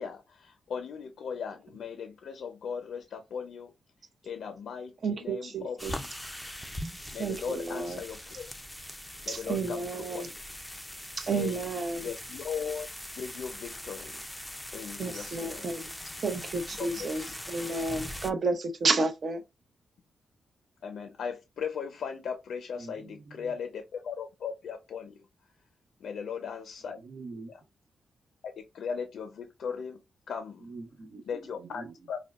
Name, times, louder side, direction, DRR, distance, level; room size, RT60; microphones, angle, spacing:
voice 1, 0.0-3.7 4.2-6.1 7.1-8.5 9.3-10.3 11.3-11.7 12.0-12.9 13.1-14.2 14.7-15.7 16.8-17.2 20.8-25.2 26.0-27.0 27.5-27.6 28.6-30.0 30.3-30.7 31.3-32.2, left 6 dB, 80° left, 0.5 m, -38 dB
voice 2, 5.0-5.9 7.2-8.0 9.3-10.3 11.2-12.1 15.0-15.9 16.2-19.4, right 3 dB, 55° right, 0.8 m, -31 dB
sound 1, 5.8-18.3, left 1 dB, 5° left, 0.4 m, -41 dB
voice 3, 22.8-23.5 26.8-27.5 30.6-32.1, right 3 dB, 75° right, 1.3 m, -45 dB
5.2 x 2.2 x 2.4 m
cardioid pair, 105°, 0 cm